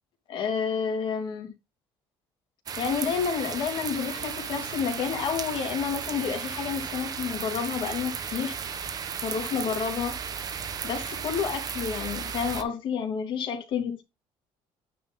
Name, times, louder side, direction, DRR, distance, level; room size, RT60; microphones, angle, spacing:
voice 1, 0.3-1.5 2.8-8.6 9.2-10.2 10.8-14.0, left 6 dB, 55° left, 2.5 m, -30 dB
sound 1, 2.7-12.6, right 7 dB, 40° right, 1.0 m, -35 dB
9.2 x 4.3 x 4.2 m
cardioid pair, 145°, 10 cm